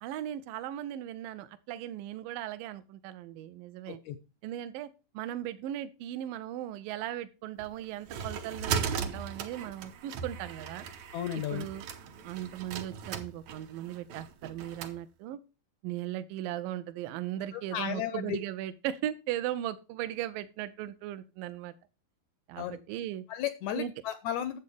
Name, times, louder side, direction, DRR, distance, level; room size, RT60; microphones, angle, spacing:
voice 1, 0.0-4.0 4.4-4.9 5.1-10.9 11.4-11.8 12.2-15.4 15.8-21.7 22.5-23.2 23.8-23.9, right 12 dB, 85° right, 12 dB, 2.3 m, -37 dB
sound 1, 7.6-15.0, right 7 dB, 65° right, 1.9 m, -38 dB
voice 2, 11.1-11.7 17.5-18.4 22.6-22.8 23.3-24.6, left 10 dB, 80° left, 11 dB, 1.6 m, -34 dB
10.5 x 7.7 x 3.4 m, 0.30 s
omnidirectional pair, 4.0 m